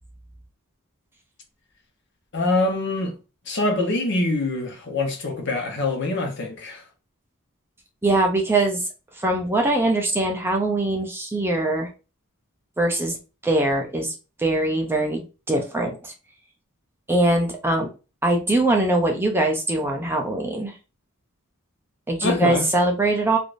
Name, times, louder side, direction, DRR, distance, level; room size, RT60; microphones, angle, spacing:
voice 1, 2.3-3.1 3.5-6.8 22.2-22.7, left 2 dB, 55° left, 0.9 m, -24 dB
voice 2, 8.0-8.8 9.2-11.9 12.8-13.2 13.4-14.1 14.4-16.1 17.1-17.9 18.2-20.7 22.1-23.4, right 2 dB, 10° right, 0.5 m, -22 dB
3.3 x 2.5 x 2.5 m
head